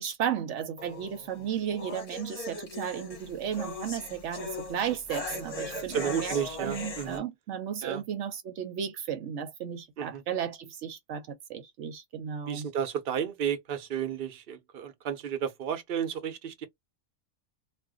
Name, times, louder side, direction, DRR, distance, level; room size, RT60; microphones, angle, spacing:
voice 1, 0.0-12.7, right 8 dB, 80° right, 0.9 m, -34 dB
sound 1, 0.8-7.2, left 3 dB, 35° left, 0.9 m, -39 dB
voice 2, 5.9-7.2 7.8-8.0 10.0-10.2 12.4-16.7, right 8 dB, 55° right, 0.9 m, -32 dB
2.5 x 2.2 x 3.5 m
omnidirectional pair, 1.2 m